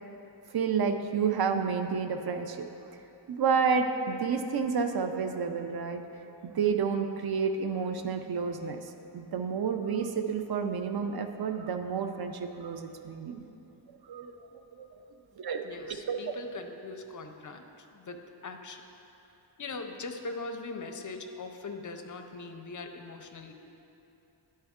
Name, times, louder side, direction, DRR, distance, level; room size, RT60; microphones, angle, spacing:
voice 1, 0.5-2.7 3.3-6.0 6.4-8.8 9.1-13.4 14.1-14.3 14.8-14.9 15.4-16.3, right 6 dB, 55° right, 6 dB, 0.5 m, -30 dB
voice 2, 15.6-18.8 19.6-23.5, left 3 dB, 40° left, 5 dB, 0.5 m, -41 dB
11.0 x 4.4 x 3.6 m, 3.0 s
wide cardioid pair, 120°, 47 cm